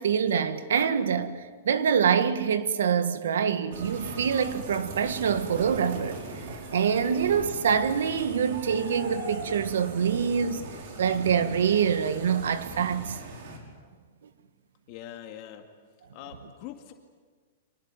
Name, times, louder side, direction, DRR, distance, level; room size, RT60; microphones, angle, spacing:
voice 1, 0.0-1.4 1.6-6.2 6.7-10.7 11.0-13.2, right 7 dB, 85° right, 1.8 m, -25 dB
sound 1, 3.7-13.6, right 3 dB, 55° right, 5.2 m, -40 dB
voice 2, 14.9-15.7 16.1-16.9, left 11 dB, 35° left, 2.1 m, -43 dB
25.0 x 20.0 x 9.1 m
hypercardioid pair, 160°, 0 cm